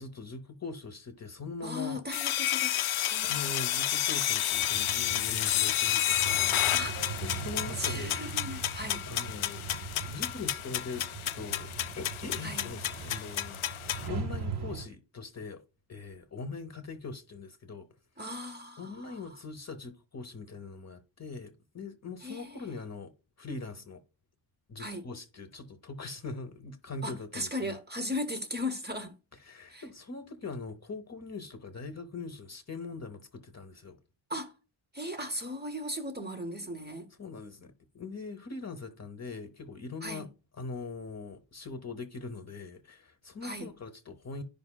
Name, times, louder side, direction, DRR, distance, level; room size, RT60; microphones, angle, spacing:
voice 1, 0.0-2.0 3.2-6.6 7.2-8.2 9.1-9.7 10.1-11.7 12.0-15.6 15.9-17.9 18.8-23.1 23.4-24.0 24.7-27.8 29.4-34.0 37.2-40.3 40.6-44.4, left 4 dB, 35° left, 0.8 m, -42 dB
voice 2, 1.6-3.5 6.1-6.4 6.7-7.0 7.8-9.0 12.4-12.7 18.2-19.4 22.2-22.8 24.8-25.1 27.0-29.2 29.7-29.8 34.3-34.5 34.9-37.1 40.0-40.3 43.4-43.7, left 1 dB, 20° right, 0.9 m, -37 dB
sound 1, 2.1-14.1, left 12 dB, 90° left, 0.5 m, -31 dB
sound 2, 4.6-14.9, right 5 dB, 55° right, 1.0 m, -40 dB
11.0 x 5.3 x 2.2 m
wide cardioid pair, 110°, 48 cm